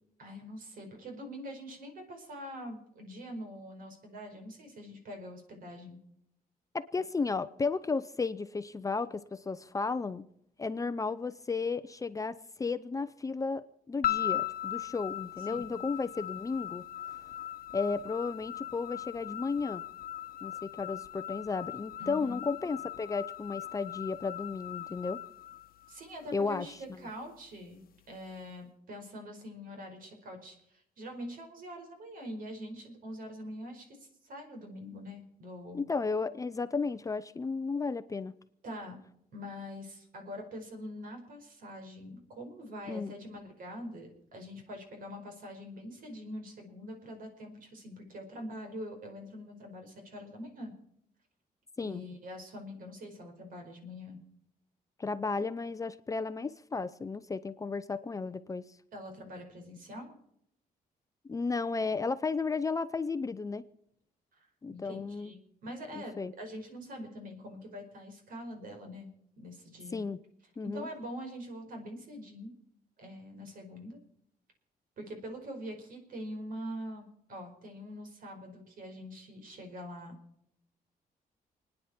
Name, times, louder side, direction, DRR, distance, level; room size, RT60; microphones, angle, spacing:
voice 1, 0.2-6.0 15.5-15.6 22.0-22.4 25.9-35.9 38.6-39.0 39.3-50.7 51.8-54.2 58.9-60.2 64.3-69.1 69.4-70.0 70.6-72.5 73.0-74.0 75.0-80.2, equal, 65° right, 4 dB, 4.9 m, -44 dB
voice 2, 6.7-10.2 10.6-16.8 17.7-19.8 20.4-25.2 26.3-26.7 35.7-38.3 42.9-43.1 51.8-52.0 55.0-58.6 61.3-63.6 64.6-65.3 65.9-66.3 69.9-70.2 70.6-70.9, left 4 dB, 20° left, 12 dB, 0.6 m, -34 dB
sound 1, 14.0-26.3, left 12 dB, 70° left, 1.1 m, -39 dB
29.0 x 10.0 x 4.4 m, 0.74 s
cardioid pair, 155°, 16 cm